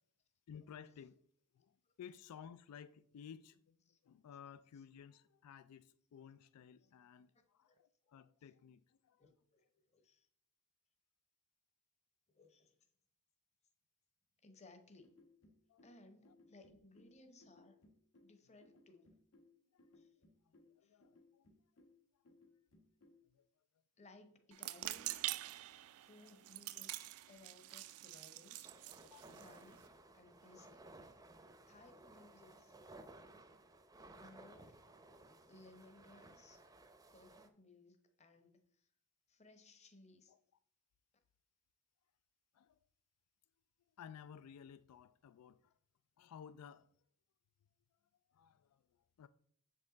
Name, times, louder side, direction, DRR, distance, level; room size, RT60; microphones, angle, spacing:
voice 1, 0.5-1.2 1.5-3.8 4.0-9.2 15.7-15.8 16.3-16.4 19.7-20.0 20.5-21.5 22.3-22.4 23.3-23.5 25.8-26.4 29.0-29.4 33.4-33.5 40.3-40.4 42.5-42.8 44.0-45.7 46.2-46.9 48.3-48.8 49.2-49.3, left 8 dB, 85° left, 0.3 m, -56 dB
voice 2, 7.3-8.5 9.2-10.3 12.3-12.8 14.4-15.1 15.8-17.8 18.2-19.1 19.9-20.2 20.8-21.0 24.0-25.2 26.0-28.8 29.3-29.8 30.1-30.9 31.7-32.8 34.2-34.8 35.5-36.6 37.1-38.9 39.3-40.3, left 2 dB, 30° left, 0.9 m, -63 dB
sound 1, 15.0-23.3, left 2 dB, 70° left, 1.2 m, -67 dB
sound 2, 24.5-29.9, right 16 dB, 75° right, 0.4 m, -46 dB
sound 3, 28.6-37.5, right 2 dB, 15° right, 0.5 m, -59 dB
7.4 x 5.3 x 3.9 m
head